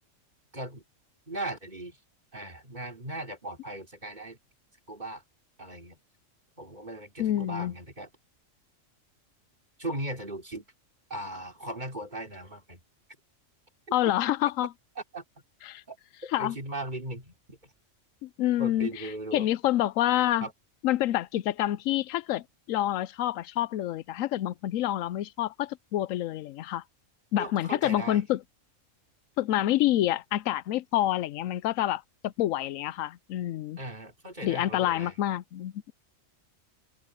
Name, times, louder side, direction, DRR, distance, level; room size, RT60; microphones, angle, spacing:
voice 1, 0.5-0.8 1.3-2.0 2.3-4.4 4.9-5.2 5.6-6.0 6.6-8.1 9.8-10.7 11.1-12.8 15.1-15.2 15.9-16.0 16.2-17.7 18.6-19.5 20.4-20.5 27.4-28.2 33.8-35.2, right 1 dB, 35° right, 3.8 m, -38 dB
voice 2, 7.2-7.7 13.9-14.7 15.7-15.8 16.3-16.6 18.2-19.1 19.3-20.5 20.8-26.8 27.3-28.4 29.4-33.8 34.4-35.9, left 13 dB, 90° left, 1.0 m, -27 dB
omnidirectional pair, 1.3 m